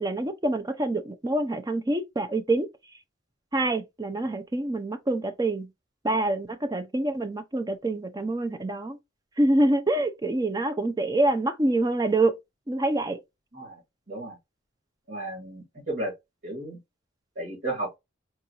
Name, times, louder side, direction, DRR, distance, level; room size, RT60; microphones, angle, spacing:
voice 1, 0.0-2.7 3.5-5.7 6.0-9.0 9.4-12.3 12.7-13.2, right 2 dB, 20° right, 0.5 m, -26 dB
voice 2, 15.1-16.1 16.4-16.8 17.4-18.0, right 2 dB, 60° right, 2.3 m, -34 dB
4.7 x 2.5 x 2.8 m
head